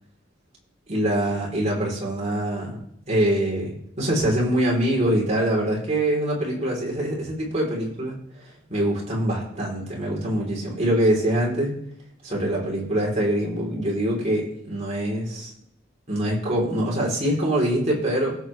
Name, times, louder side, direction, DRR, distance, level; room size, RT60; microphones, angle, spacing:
voice 1, 0.9-2.8 3.1-8.2 8.7-11.8 12.2-15.5 16.1-18.4, right 1 dB, 35° right, -3 dB, 3.8 m, -24 dB
19.5 x 7.9 x 3.4 m, 0.71 s
head